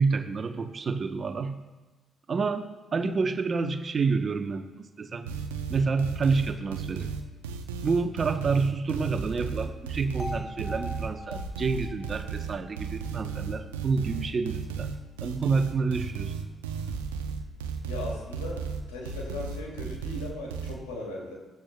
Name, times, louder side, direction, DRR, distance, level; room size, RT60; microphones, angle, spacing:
voice 1, 0.0-1.5 2.3-2.7 2.9-5.3 5.7-7.1 7.8-14.9 15.2-16.3, right 4 dB, 45° right, 7 dB, 1.0 m, -28 dB
sound 1, 5.3-20.7, right 5 dB, 90° right, 0.6 m, -34 dB
sound 2, 10.2-14.2, left 2 dB, 5° left, 0.7 m, -43 dB
voice 2, 17.8-21.3, left 2 dB, 90° left, -2 dB, 2.6 m, -38 dB
15.0 x 12.0 x 2.3 m, 1.2 s
hypercardioid pair, 50°, 0 cm